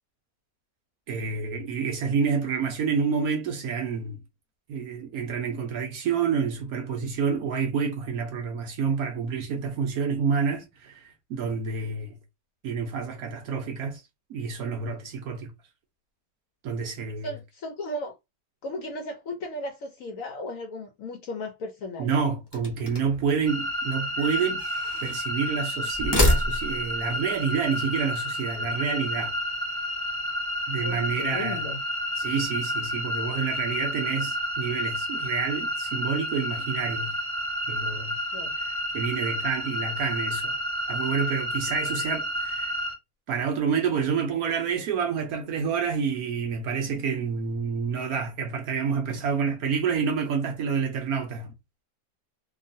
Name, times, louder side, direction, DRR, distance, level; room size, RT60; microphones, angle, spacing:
voice 1, 1.1-4.2 4.7-12.2 12.6-14.0 14.3-15.5 16.6-17.3 22.0-24.6 25.0-29.3 30.7-31.6 32.2-37.1 37.7-38.2 38.6-40.6 40.9-42.8 43.3-51.5, right 6 dB, 70° right, 1.0 m, -28 dB
voice 2, 17.2-18.1 18.6-22.1 30.8-31.8 38.3-38.5, left 1 dB, 70° left, 0.8 m, -35 dB
sound 1, 22.5-23.3 24.2-25.2 25.9-26.9, left 1 dB, 30° left, 0.4 m, -26 dB
sound 2, 23.5-42.9, equal, 45° right, 1.0 m, -30 dB
2.9 x 2.3 x 2.6 m
omnidirectional pair, 1.9 m